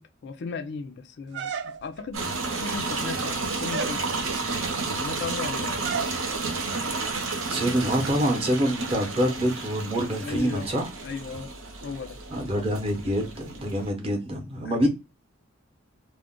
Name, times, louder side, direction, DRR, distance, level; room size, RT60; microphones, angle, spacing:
voice 1, 0.0-4.2 5.0-6.0 10.2-10.7 11.0-11.5 11.8-12.2 14.6-14.9, left 4 dB, 55° left, 0.4 m, -36 dB
sound 1, 1.3-2.1 2.9-3.3 3.7-4.0 5.8-6.2, right 6 dB, 55° right, 0.3 m, -32 dB
sound 2, 2.1-13.9, right 3 dB, 80° right, 0.8 m, -31 dB
voice 2, 7.5-10.9 12.3-14.9, equal, 25° right, 0.7 m, -26 dB
2.4 x 2.1 x 3.6 m
head